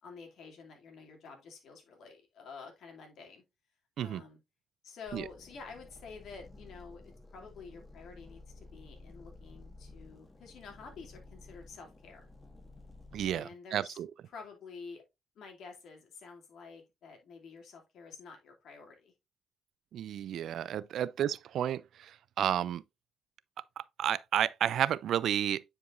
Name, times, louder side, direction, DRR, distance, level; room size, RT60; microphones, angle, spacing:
voice 1, 0.0-3.4 4.0-4.4 4.8-7.0 7.3-12.2 13.2-14.0 14.3-15.0 15.4-19.1, left 5 dB, 70° left, 2.5 m, -49 dB
sound 1, 5.1-13.4, left 2 dB, 15° left, 1.9 m, -53 dB
voice 2, 13.1-14.1 19.9-22.8 23.8-25.6, right 10 dB, 70° right, 0.3 m, -32 dB
9.4 x 4.8 x 2.5 m
cardioid pair, 90°, 0 cm